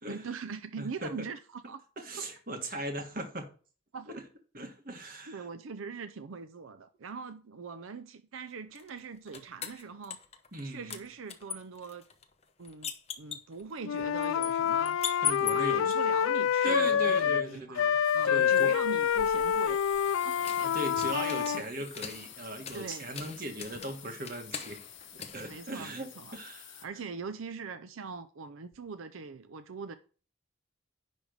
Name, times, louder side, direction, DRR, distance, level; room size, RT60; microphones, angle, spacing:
voice 1, 0.1-1.8 2.2-2.3 3.9-4.2 5.3-10.2 10.6-12.0 12.6-15.0 15.5-19.8 20.2-20.4 21.5-21.7 22.7-23.1 25.5-26.4 26.8-29.9, right 5 dB, 90° right, 0.5 m, -42 dB
voice 2, 0.8-1.1 2.0-3.5 4.5-5.4 10.5-11.0 15.2-15.9 16.6-18.0 18.2-18.7 20.6-24.8 25.1-26.9, right 1 dB, 45° right, 1.5 m, -38 dB
sound 1, 8.8-10.6 10.9-16.0 18.7-26.2, left 7 dB, 30° left, 0.8 m, -41 dB
Wind instrument woodwind instrument, 13.8-17.5 17.8-21.6, left 8 dB, 85° left, 0.3 m, -27 dB
sound 2, 18.0-26.9, left 10 dB, 70° left, 1.3 m, -49 dB
10.5 x 3.5 x 6.5 m
head